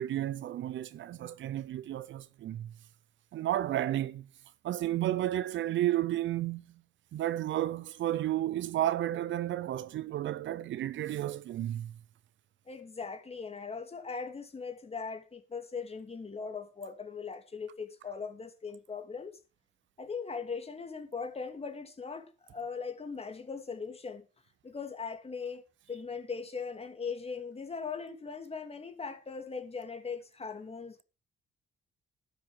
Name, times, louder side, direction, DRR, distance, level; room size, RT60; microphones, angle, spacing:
voice 1, 0.0-2.7 3.3-4.3 4.6-6.8 7.1-12.0, right 13 dB, 70° right, 0.8 m, -32 dB
voice 2, 12.7-19.4 20.0-24.3 24.6-31.0, left 5 dB, 30° left, 2.6 m, -40 dB
12.0 x 9.3 x 4.8 m
cardioid pair, 90°, 20 cm